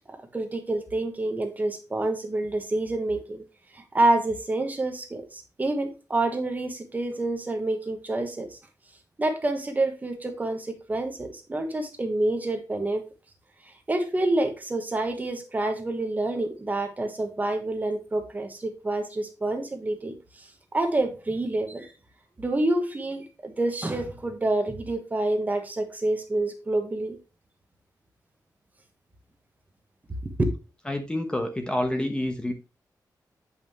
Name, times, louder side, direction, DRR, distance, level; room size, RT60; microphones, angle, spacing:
voice 1, 0.1-3.4 3.7-8.6 9.2-13.0 13.9-20.5 20.7-21.9 22.4-27.2 30.2-30.5, right 2 dB, 25° right, 1.2 m, -28 dB
voice 2, 30.9-32.5, left 1 dB, 15° left, 1.0 m, -28 dB
8.5 x 5.6 x 3.0 m
wide cardioid pair, 175°, 7 cm